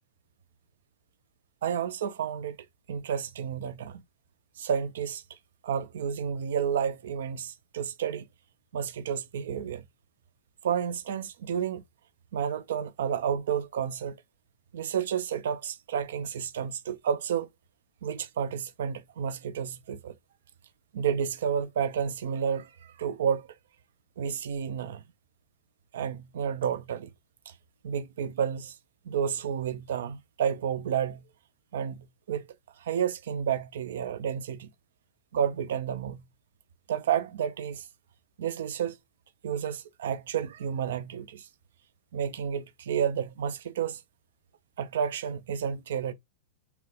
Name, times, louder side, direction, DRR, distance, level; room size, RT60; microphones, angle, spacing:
voice 1, 1.6-2.6 2.9-4.0 4.6-5.4 5.6-8.3 8.7-9.9 10.6-11.8 12.3-14.2 14.7-17.5 18.0-20.1 20.9-23.5 24.2-25.0 25.9-27.1 27.5-27.6 27.8-28.7 29.0-31.3 31.7-32.5 32.8-34.7 35.3-36.2 36.9-37.9 38.4-39.0 39.4-41.5 42.1-44.0 44.8-46.1, right 8 dB, 60° right, 0.3 m, -31 dB
2.7 x 2.0 x 3.2 m
figure-of-eight pair, 90°, 0 cm